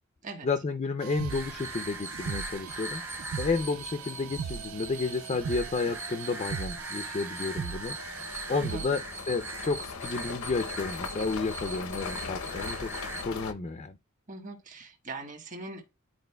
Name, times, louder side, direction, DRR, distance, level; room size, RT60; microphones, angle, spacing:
voice 1, 0.4-3.0 3.4-8.0 8.5-12.9 13.3-14.0, left 4 dB, 30° left, 0.4 m, -31 dB
sound 1, 1.0-9.2, right 7 dB, 70° right, 0.3 m, -40 dB
sound 2, 1.3-13.2, right 2 dB, 10° right, 0.6 m, -40 dB
sound 3, 6.8-6.9 7.4-13.5, left 5 dB, 80° left, 0.7 m, -39 dB
voice 2, 8.5-8.8 14.3-15.8, right 3 dB, 35° right, 1.3 m, -41 dB
10.5 x 4.1 x 2.2 m
head